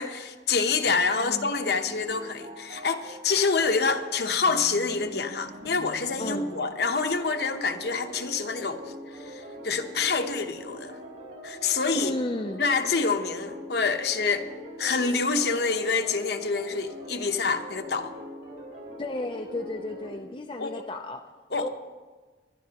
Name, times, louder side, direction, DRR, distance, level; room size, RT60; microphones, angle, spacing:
voice 1, 0.0-8.8 9.1-11.0 11.4-12.1 12.6-14.5 14.8-18.1 20.6-20.7 21.5-21.7, left 4 dB, 65° left, 6 dB, 0.9 m, -27 dB
voice 2, 1.2-1.5 6.2-6.5 11.9-12.6 19.0-21.3 21.6-21.7, left 2 dB, 30° left, 4 dB, 0.5 m, -33 dB
sound 1, 1.5-20.2, equal, 65° right, 4.2 m, -43 dB
22.5 x 11.0 x 2.9 m, 1.4 s
head